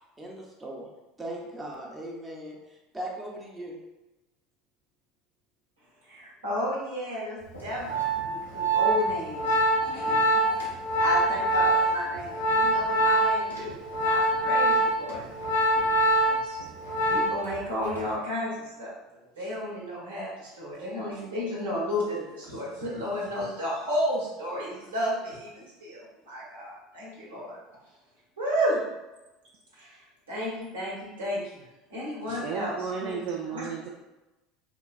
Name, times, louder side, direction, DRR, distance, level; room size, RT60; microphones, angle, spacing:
voice 1, 0.2-0.9 1.2-3.8 9.9-10.3, right 1 dB, 15° right, -2 dB, 0.7 m, -39 dB
voice 2, 6.1-10.7 11.0-13.8 14.0-15.2 16.2-16.6 17.1-18.9 19.3-27.6 28.4-28.8 29.7-31.6 31.9-33.2 33.5-33.7, equal, 85° right, -6 dB, 1.1 m, -33 dB
Organ, 7.5-17.6 17.8-18.1, right 1 dB, 90° left, 0.7 m, -25 dB
voice 3, 32.4-33.9, right 6 dB, 55° right, 0 dB, 0.4 m, -33 dB
3.7 x 2.3 x 2.3 m, 1.0 s
hypercardioid pair, 75°, 0 cm